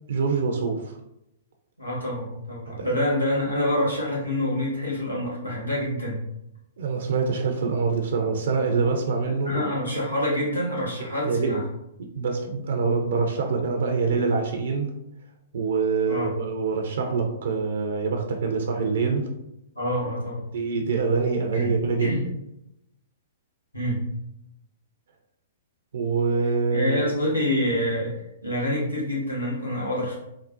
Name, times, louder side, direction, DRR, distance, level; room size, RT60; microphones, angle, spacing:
voice 1, 0.1-0.9 2.8-2.9 6.8-9.7 11.2-11.5 12.0-14.9 15.5-19.3 20.5-22.1 25.9-27.0, right 4 dB, 65° right, 3 dB, 0.4 m, -25 dB
voice 2, 1.8-6.2 9.3-11.6 16.1-16.3 19.7-20.5 21.5-21.7 22.0-22.2 23.7-24.1 26.7-28.1 28.4-30.1, left 1 dB, 90° left, -6 dB, 1.1 m, -26 dB
3.7 x 2.1 x 2.5 m, 0.84 s
figure-of-eight pair, 115°, 0 cm